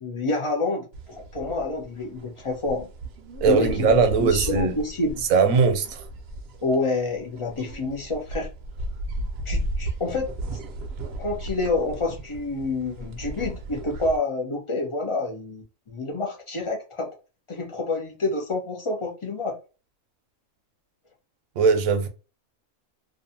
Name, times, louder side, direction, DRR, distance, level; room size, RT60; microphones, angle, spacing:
voice 1, 0.0-2.9 3.4-5.2 6.6-8.5 9.5-10.3 11.2-17.1 17.5-19.6, left 3 dB, 45° left, 0.4 m, -28 dB
sound 1, 0.9-14.2, right 1 dB, 65° right, 0.7 m, -35 dB
voice 2, 3.4-4.8 5.3-6.0 21.6-22.1, right 5 dB, 90° right, 1.0 m, -20 dB
2.5 x 2.3 x 2.6 m
omnidirectional pair, 1.4 m